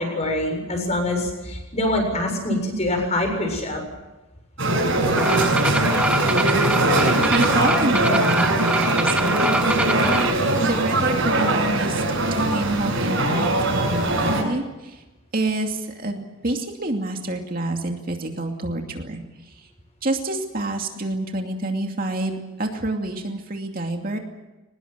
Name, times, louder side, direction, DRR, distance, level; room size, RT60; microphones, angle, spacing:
voice 1, 0.0-3.8, left 1 dB, 30° left, 3 dB, 7.3 m, -24 dB
sound 1, 4.6-14.4, right 1 dB, 65° right, 7.4 m, -21 dB
sound 2, 5.2-10.3, right 1 dB, 5° right, 0.9 m, -24 dB
voice 2, 7.2-12.0 12.3-15.0 15.3-19.2 19.5-19.6 20.0-24.2, right 2 dB, 40° right, 3 dB, 2.5 m, -27 dB
23.5 x 20.0 x 7.9 m, 1.1 s
head